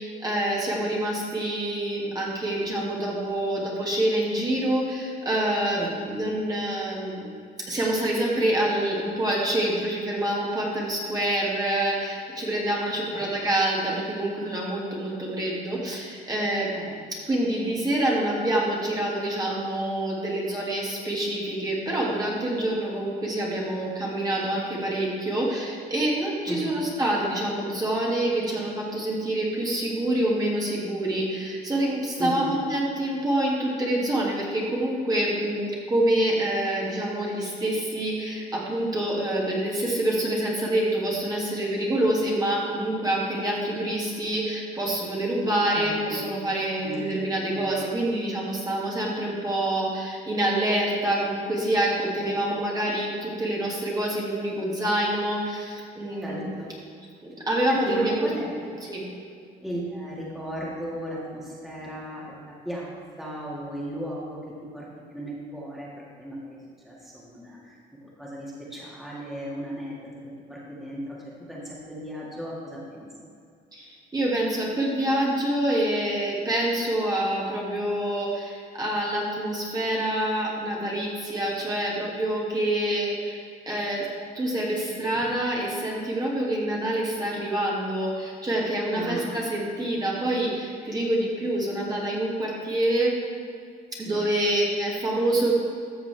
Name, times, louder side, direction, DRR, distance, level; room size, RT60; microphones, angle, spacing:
voice 1, 0.0-7.3 7.7-16.7 17.3-56.5 57.2-59.0 73.7-84.1 84.3-93.2 94.0-95.5, right 1 dB, 20° right, -4 dB, 2.0 m, -26 dB
voice 2, 32.2-32.5 45.7-46.2 46.7-47.8 52.2-52.3 56.2-56.7 57.7-58.5 58.7-58.8 59.6-62.9 63.2-64.9 65.1-73.1 88.9-89.4 94.1-94.2, equal, ahead, -6 dB, 1.9 m, -36 dB
13.5 x 6.8 x 3.4 m, 2.3 s
cardioid pair, 110°, 17 cm